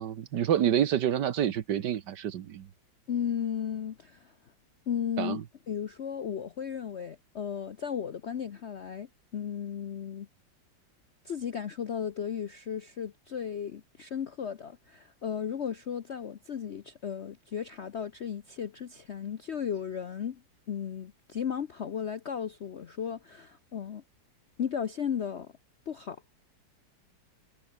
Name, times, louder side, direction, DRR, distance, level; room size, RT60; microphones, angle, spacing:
voice 1, 0.0-2.7 5.2-5.4, right 10 dB, 65° right, 1.6 m, -28 dB
voice 2, 3.1-4.3 4.9-5.4 5.7-10.3 11.2-20.4 20.7-24.0 24.6-25.5 25.9-26.2, left 8 dB, 55° left, 0.7 m, -35 dB
omnidirectional pair, 2.1 m